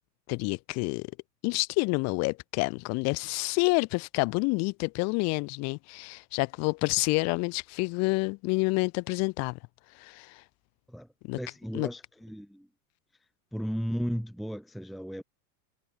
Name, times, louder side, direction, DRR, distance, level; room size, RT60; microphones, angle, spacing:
voice 1, 0.3-1.1 1.4-9.6 10.0-10.4 11.3-11.4 11.7-11.9, left 28 dB, 30° left, 1.0 m, -28 dB
voice 2, 11.4-12.7 13.5-15.2, equal, ahead, 1.0 m, -35 dB
supercardioid pair, 165°, 49 cm